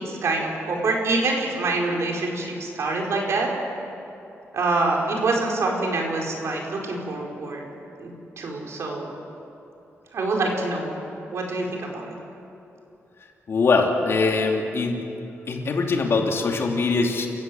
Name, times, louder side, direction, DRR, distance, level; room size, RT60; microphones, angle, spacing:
voice 1, 0.0-3.5 4.5-7.6 8.0-9.1 10.1-10.9 11.3-12.1, right 3 dB, 65° right, 0 dB, 4.8 m, -26 dB
voice 2, 13.5-15.0 15.5-17.3, left 4 dB, 55° left, 1 dB, 3.0 m, -22 dB
29.5 x 15.5 x 7.8 m, 2.8 s
wide cardioid pair, 125°, 5 cm